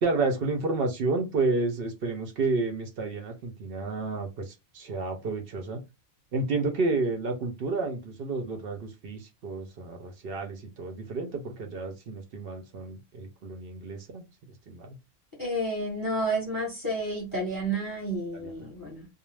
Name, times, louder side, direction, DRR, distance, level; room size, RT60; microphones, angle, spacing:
voice 1, 0.0-5.8 6.3-14.2 14.7-15.0 18.3-18.5, right 3 dB, 55° right, 0.7 m, -30 dB
voice 2, 15.4-19.1, right 1 dB, 20° left, 1.0 m, -30 dB
2.4 x 2.0 x 3.1 m
omnidirectional pair, 1.3 m